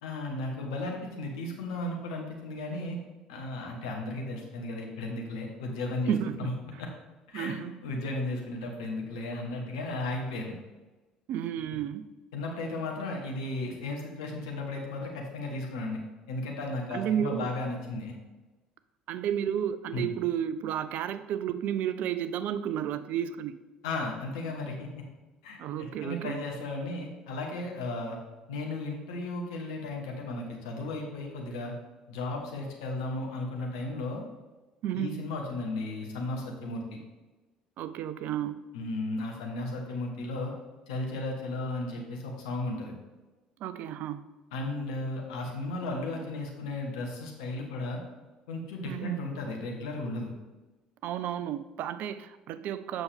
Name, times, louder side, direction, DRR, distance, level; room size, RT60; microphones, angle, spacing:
voice 1, 0.0-3.0 3.3-6.9 7.3-10.5 12.3-16.0 16.3-18.1 19.9-20.1 23.8-25.0 25.4-28.2 28.5-31.7 32.1-34.2 34.9-37.0 38.7-40.5 40.9-42.9 44.5-48.0 48.5-50.3, left 2 dB, 70° left, 0 dB, 1.5 m, -35 dB
voice 2, 6.1-6.5 7.3-7.8 11.3-12.1 16.9-17.5 19.1-23.6 25.6-26.4 34.8-35.3 37.8-38.7 43.6-44.2 48.8-49.2 51.0-53.0, right 10 dB, 55° right, 13 dB, 0.5 m, -32 dB
7.8 x 6.1 x 3.5 m, 1.2 s
figure-of-eight pair, 55°, 3 cm